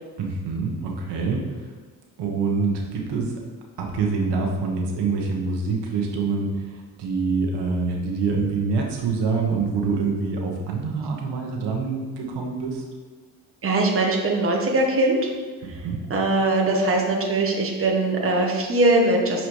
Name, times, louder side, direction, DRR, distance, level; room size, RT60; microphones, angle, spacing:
voice 1, 0.2-1.7 2.2-3.4 3.8-12.8 15.6-16.0, right 4 dB, 70° right, 0 dB, 1.6 m, -26 dB
voice 2, 13.6-15.3 16.1-19.5, right 2 dB, 30° right, 0 dB, 1.5 m, -21 dB
6.4 x 4.9 x 4.8 m, 1.4 s
supercardioid pair, 70°, 43 cm